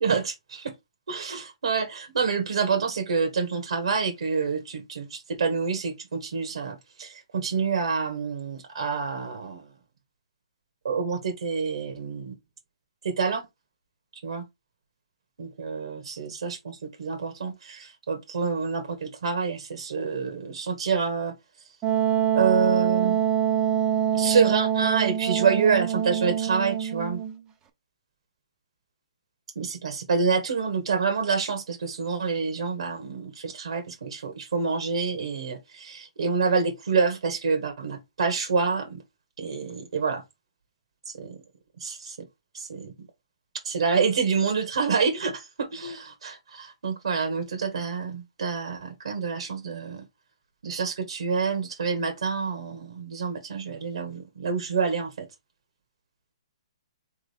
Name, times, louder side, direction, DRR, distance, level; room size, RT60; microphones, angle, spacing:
voice 1, 0.0-0.7 1.1-9.6 10.8-12.3 13.0-13.4 14.2-14.4 15.4-21.3 22.3-23.2 24.1-27.2 29.5-39.0 39.4-40.2 41.2-41.4 41.8-42.1 42.5-42.9 43.6-50.0 50.6-55.3, right 5 dB, 80° right, 1.6 m, -27 dB
Wind instrument woodwind instrument, 21.8-27.3, right 10 dB, 20° right, 0.7 m, -25 dB
3.7 x 3.7 x 3.4 m
hypercardioid pair, 145°, 3 cm